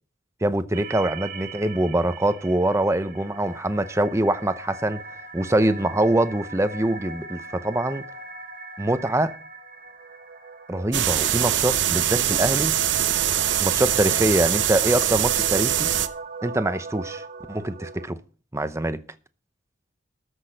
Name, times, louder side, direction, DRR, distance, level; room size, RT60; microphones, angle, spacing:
voice 1, 0.4-5.0 5.3-8.0 8.8-9.4 10.7-12.8 13.6-15.9 16.4-18.2 18.5-19.0, right 1 dB, 15° right, 0.7 m, -24 dB
sound 1, 0.7-18.1, right 4 dB, 45° right, 1.6 m, -39 dB
sound 2, 10.9-16.1, right 11 dB, 65° right, 0.8 m, -23 dB
13.5 x 6.3 x 6.3 m
head